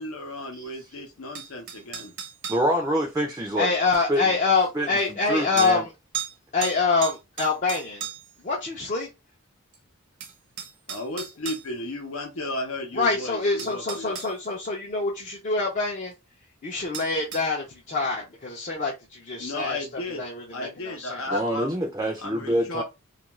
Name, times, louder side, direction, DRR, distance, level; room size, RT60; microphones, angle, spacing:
voice 1, 0.0-2.1 10.9-14.2 19.4-20.2 20.5-21.7 22.2-22.8, left 1 dB, 80° left, 0.7 m, -34 dB
sound 1, 1.3-2.7 4.1-4.2 5.6-5.8 6.1-6.3 6.6-8.4 9.7-9.8 10.2-11.6 13.0-13.1 13.6-14.3 16.9-17.5, right 8 dB, 60° right, 0.6 m, -35 dB
voice 2, 2.5-3.7 4.1-4.2 4.7-5.0 5.3-5.8 21.3-22.8, equal, 15° right, 0.4 m, -26 dB
voice 3, 3.6-5.9 6.5-8.1 8.4-9.1 12.9-16.1 16.6-21.2, left 4 dB, 40° left, 0.5 m, -26 dB
2.4 x 2.2 x 3.0 m
head